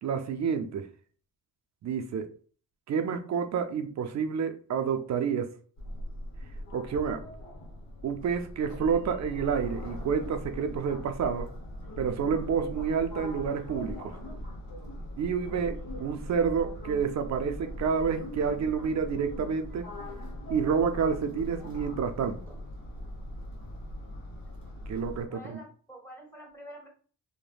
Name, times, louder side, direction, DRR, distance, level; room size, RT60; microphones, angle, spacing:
voice 1, 0.0-0.9 1.8-2.3 2.9-5.6 6.7-7.2 8.0-11.5 12.0-14.2 15.2-19.9 20.5-22.4 24.9-25.6, right 6 dB, 50° right, 0.4 m, -29 dB
sound 1, 5.8-25.3, left 1 dB, 70° left, 1.0 m, -40 dB
voice 2, 14.1-14.5 22.2-22.6 24.4-24.6 25.3-26.9, equal, 5° left, 1.1 m, -49 dB
3.2 x 2.1 x 2.3 m
cardioid pair, 80°, 36 cm